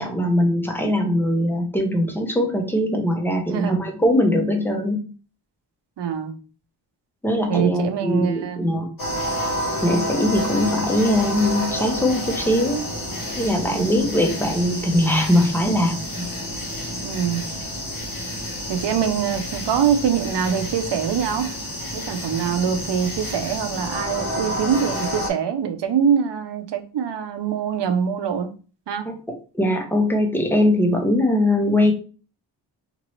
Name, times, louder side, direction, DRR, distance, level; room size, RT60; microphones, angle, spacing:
voice 1, 0.0-5.1 7.2-8.9 9.8-12.9 13.4-16.3 29.1-31.9, left 1 dB, 5° left, 3 dB, 0.6 m, -21 dB
voice 2, 3.5-3.8 6.0-6.3 7.5-8.6 13.7-13.9 17.0-17.5 18.7-21.5 21.9-28.5 28.9-29.1, right 7 dB, 70° right, 8 dB, 0.6 m, -23 dB
sound 1, 9.0-25.3, equal, 45° left, 1.3 m, -29 dB
3.0 x 2.6 x 3.0 m, 0.37 s
wide cardioid pair, 115°, 43 cm